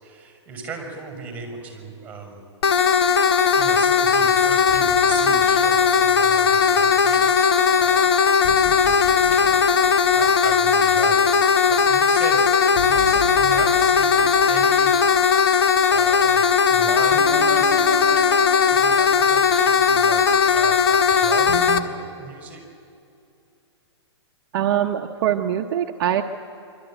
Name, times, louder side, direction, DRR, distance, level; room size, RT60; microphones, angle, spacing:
voice 1, 0.0-2.4 3.6-8.1 8.9-9.7 10.1-11.2 11.7-14.9 15.9-18.1 18.7-22.6, right 4 dB, 10° right, 3 dB, 6.1 m, -36 dB
sound 1, 2.6-21.8, left 6 dB, 60° left, 1.3 m, -18 dB
sound 2, 4.7-6.9 8.4-11.1 12.7-15.6 17.1-20.5 21.5-21.8, equal, 20° left, 3.1 m, -36 dB
voice 2, 24.5-26.2, right 10 dB, 50° right, 4 dB, 0.9 m, -23 dB
25.0 x 13.0 x 9.0 m, 2.6 s
hypercardioid pair, 140°, 15 cm